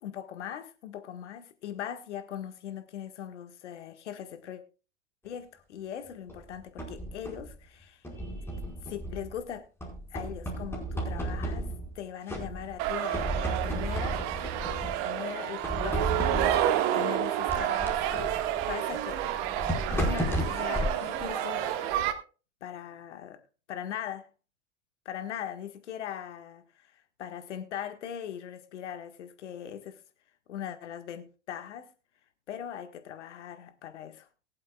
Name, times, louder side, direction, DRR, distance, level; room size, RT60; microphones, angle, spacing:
voice 1, 0.0-4.6 5.2-8.1 8.8-9.7 10.1-14.2 14.7-18.4 18.7-19.3 19.9-21.7 22.6-23.4 23.7-24.3 25.0-30.0 30.5-31.9 32.5-34.3, left 9 dB, 80° left, 1.6 m, -40 dB
sound 1, 6.3-7.5 8.0-9.4 9.8-12.0 12.3-12.8 13.1-15.1 15.6-16.7 17.5-22.0, right 1 dB, 5° left, 4.8 m, -34 dB
sound 2, 12.8-22.1, right 12 dB, 60° right, 1.7 m, -30 dB
22.5 x 7.8 x 2.3 m
hypercardioid pair, 100°, 35 cm